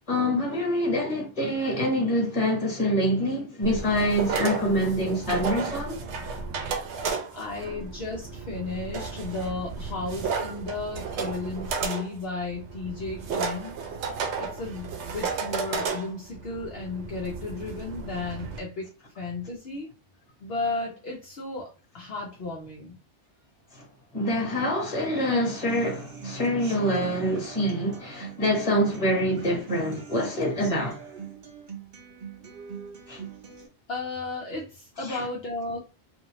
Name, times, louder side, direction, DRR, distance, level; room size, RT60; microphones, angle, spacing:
voice 1, 0.1-6.0 23.7-23.8 24.1-31.0 33.1-33.2 35.0-35.2, equal, 30° left, 1.3 m, -26 dB
sound 1, 3.6-18.6, right 5 dB, 80° right, 0.9 m, -33 dB
voice 2, 7.3-13.7 14.4-18.9 19.2-19.9 20.4-22.9 33.9-35.8, left 3 dB, 65° left, 0.9 m, -34 dB
Human voice / Acoustic guitar, 25.7-33.7, right 6 dB, 50° right, 0.8 m, -42 dB
2.7 x 2.6 x 2.9 m
omnidirectional pair, 1.2 m